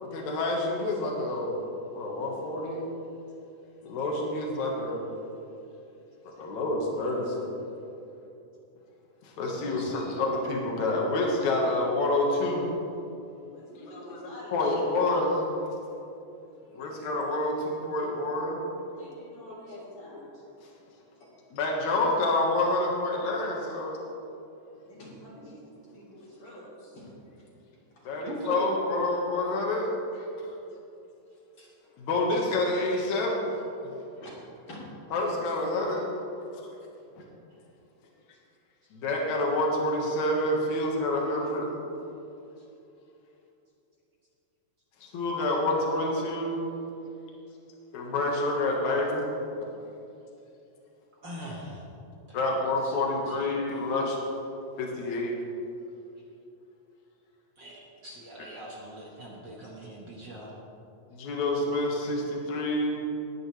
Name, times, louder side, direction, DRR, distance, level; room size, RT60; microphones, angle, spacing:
voice 1, 0.0-1.6 1.9-2.9 3.8-5.1 6.4-7.6 9.2-12.7 13.8-14.2 14.5-15.6 16.7-18.6 21.5-24.0 28.0-30.2 32.0-33.5 33.8-33.9 35.1-36.1 37.2-37.3 38.9-41.7 45.0-46.8 47.9-49.3 52.3-54.2 54.8-55.3 61.1-63.0, left 2 dB, 70° left, -1 dB, 2.9 m, -28 dB
voice 2, 9.6-10.0 20.6-20.7 26.3-26.4 28.2-28.7 37.5-37.6 42.6-42.7 51.2-51.8 52.3-52.6 52.8-53.9 57.6-60.6, right 1 dB, 45° right, -4 dB, 1.9 m, -42 dB
voice 3, 13.4-14.7 16.6-17.0 18.9-20.3 21.2-21.3 24.8-27.2 28.0-28.2 31.6-32.0 34.2-34.3 34.7-34.8, left 1 dB, 45° left, -6 dB, 3.8 m, -47 dB
20.0 x 10.0 x 3.3 m, 2.8 s
omnidirectional pair, 3.5 m